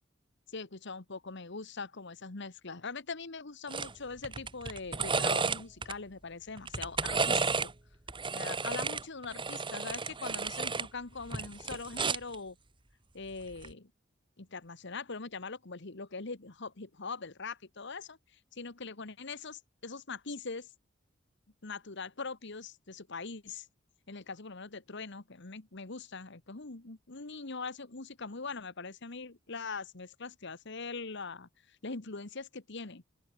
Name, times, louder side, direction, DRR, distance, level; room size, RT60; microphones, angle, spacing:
voice 1, 0.5-7.7 8.3-12.6 13.1-13.9 14.4-20.7 21.6-23.7 24.1-33.0, left 4 dB, 60° left, 1.5 m, -42 dB
sound 1, 3.7-3.9 4.2-5.9 6.6-7.7 8.1-10.9 11.2-12.3 13.5-13.7, right 4 dB, 25° right, 1.8 m, -32 dB
open air
head